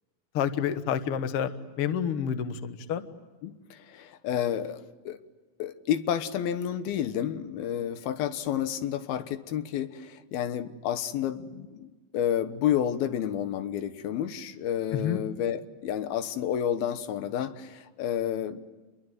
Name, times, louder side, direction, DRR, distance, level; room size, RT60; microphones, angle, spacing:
voice 1, 0.3-1.5 1.8-3.1 15.0-15.2, left 8 dB, 60° left, 1.6 m, -28 dB
voice 2, 3.4-5.2 5.6-18.7, left 10 dB, 85° left, 3.1 m, -30 dB
27.5 x 22.0 x 9.3 m
omnidirectional pair, 4.2 m